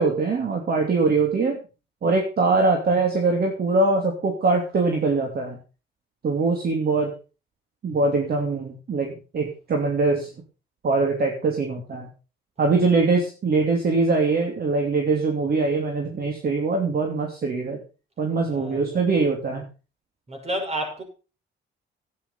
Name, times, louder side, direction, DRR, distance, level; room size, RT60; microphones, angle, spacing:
voice 1, 0.0-1.6 2.0-5.6 6.2-7.1 7.8-10.3 10.8-12.1 12.6-17.8 18.2-19.6, right 3 dB, 50° right, 2.9 m, -22 dB
voice 2, 18.4-19.0 20.3-21.0, right 1 dB, 30° right, 6.0 m, -31 dB
11.5 x 9.8 x 5.7 m
cardioid pair, 90°, 20 cm